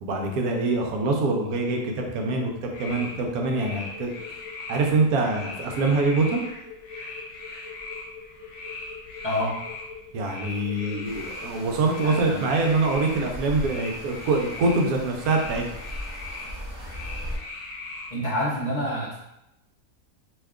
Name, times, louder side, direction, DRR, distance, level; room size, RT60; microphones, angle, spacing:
voice 1, 0.0-4.1 4.7-6.4 10.1-15.6, right 3 dB, 85° right, 1 dB, 1.1 m, -24 dB
sound 1, 1.4-11.6, left 6 dB, 10° right, 0.7 m, -44 dB
sound 2, 2.7-18.1, left 2 dB, 70° left, 0.9 m, -40 dB
voice 2, 9.2-9.6 12.0-12.5 18.1-19.2, equal, 40° left, -9 dB, 0.6 m, -27 dB
sound 3, 11.0-17.4, equal, 45° right, 0.7 m, -38 dB
2.8 x 2.2 x 3.5 m, 0.87 s
omnidirectional pair, 1.5 m